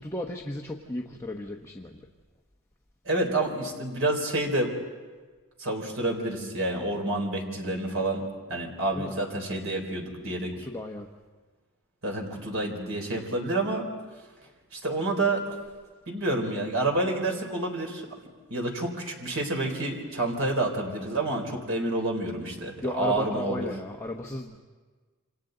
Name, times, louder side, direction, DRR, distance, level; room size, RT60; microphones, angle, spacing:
voice 1, 0.0-2.0 8.9-9.2 10.6-11.1 22.8-24.6, left 1 dB, 15° left, 0 dB, 1.0 m, -34 dB
voice 2, 3.1-4.7 5.6-8.2 8.5-10.5 12.0-13.8 14.7-15.4 16.1-18.0 18.5-23.7, right 2 dB, 60° right, 1 dB, 3.8 m, -28 dB
28.0 x 27.0 x 3.9 m, 1.4 s
head